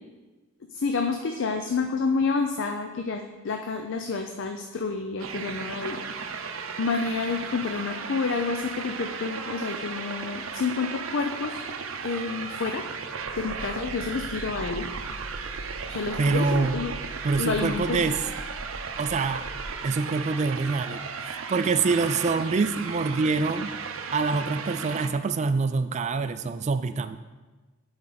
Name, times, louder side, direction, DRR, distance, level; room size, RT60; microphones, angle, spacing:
voice 1, 0.7-11.6 12.0-12.8 13.4-14.9 15.9-16.9 17.4-18.0, left 4 dB, 60° left, 4 dB, 0.5 m, -29 dB
sound 1, 5.2-25.1, right 5 dB, 75° right, 0.6 m, -35 dB
sound 2, 13.2-19.7, right 1 dB, 85° left, 2.7 m, -42 dB
voice 2, 16.2-16.8 17.2-18.2 19.0-19.5 19.8-23.7 24.1-27.2, right 4 dB, 35° right, 11 dB, 0.3 m, -25 dB
11.0 x 4.4 x 4.0 m, 1.3 s
head